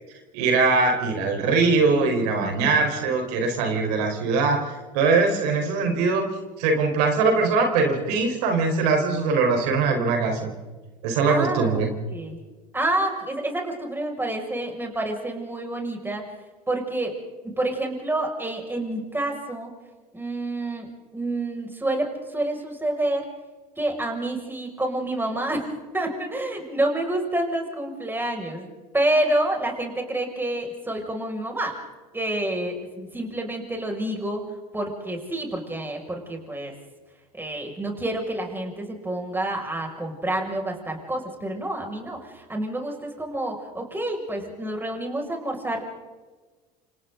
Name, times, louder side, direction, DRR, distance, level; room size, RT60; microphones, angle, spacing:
voice 1, 0.3-4.7 4.9-6.3 6.6-10.5 11.0-11.9, right 4 dB, 75° right, 3 dB, 4.7 m, -21 dB
voice 2, 2.4-2.7 11.3-12.4 12.7-16.3 16.7-19.7 20.1-23.3 23.8-25.7 25.9-31.8 32.1-36.7 37.3-45.9, right 1 dB, 10° right, 1 dB, 6.5 m, -28 dB
29.5 x 27.0 x 4.0 m, 1.3 s
hypercardioid pair, 85°, 21 cm